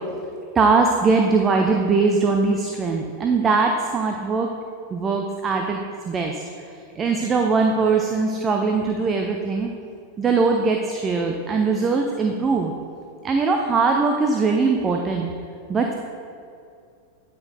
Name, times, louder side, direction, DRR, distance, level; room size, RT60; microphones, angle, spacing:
voice 1, 0.6-4.5 4.9-5.8 6.1-6.3 7.0-9.7 10.2-12.7 13.2-15.3 15.7-15.9, right 4 dB, 20° right, 3 dB, 0.5 m, -21 dB
9.3 x 5.2 x 4.0 m, 2.4 s
figure-of-eight pair, 90°, 0 cm